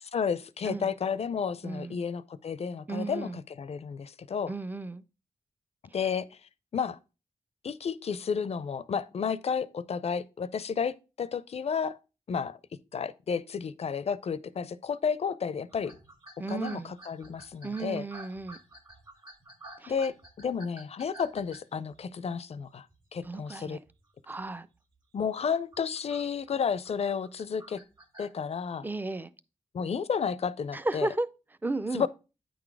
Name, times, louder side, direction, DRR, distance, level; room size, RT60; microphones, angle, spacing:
voice 1, 0.0-4.5 5.9-6.4 6.7-7.0 7.6-12.0 12.3-12.6 12.9-15.9 16.5-18.0 19.9-22.9 23.1-23.8 25.1-27.8 28.2-28.9 29.7-31.1 31.9-32.1, left 6 dB, 55° left, 0.4 m, -32 dB
voice 2, 1.6-2.0 2.9-3.4 4.5-5.0 16.4-16.9 17.6-18.6 19.8-19.9 23.2-23.8 24.3-24.7 28.8-29.3 30.7-31.3 31.6-32.1, right 2 dB, 15° right, 0.4 m, -34 dB
sound 1, 15.7-22.3 22.9-23.3 23.7-24.0 24.4-24.6 25.2-28.4, right 1 dB, 35° right, 1.7 m, -51 dB
9.3 x 3.9 x 4.7 m
wide cardioid pair, 175°, 13 cm